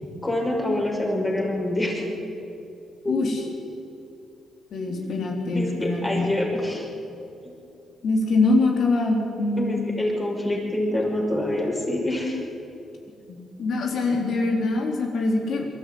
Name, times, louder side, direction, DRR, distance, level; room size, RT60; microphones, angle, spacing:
voice 1, 0.2-2.0 3.0-3.3 4.8-5.0 5.4-6.9 7.4-7.5 9.6-12.4, left 1 dB, 15° left, -1 dB, 5.8 m, -26 dB
voice 2, 3.0-3.4 4.7-6.3 8.0-9.8 13.3-15.6, left 2 dB, 65° left, 1 dB, 3.9 m, -24 dB
22.0 x 13.5 x 9.5 m, 2.8 s
cardioid pair, 105°, 0 cm